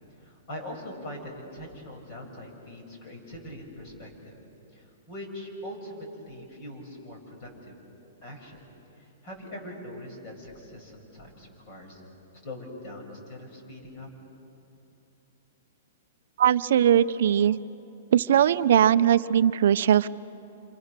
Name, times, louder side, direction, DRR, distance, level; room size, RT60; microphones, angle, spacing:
voice 1, 0.2-4.4 4.7-7.8 8.2-8.6 9.0-12.0 12.4-14.1, left 1 dB, 35° left, 1 dB, 6.6 m, -42 dB
voice 2, 16.4-17.6 18.1-20.1, right 10 dB, 65° right, 13 dB, 0.5 m, -20 dB
29.0 x 26.0 x 6.7 m, 2.9 s
hypercardioid pair, 160°, 0 cm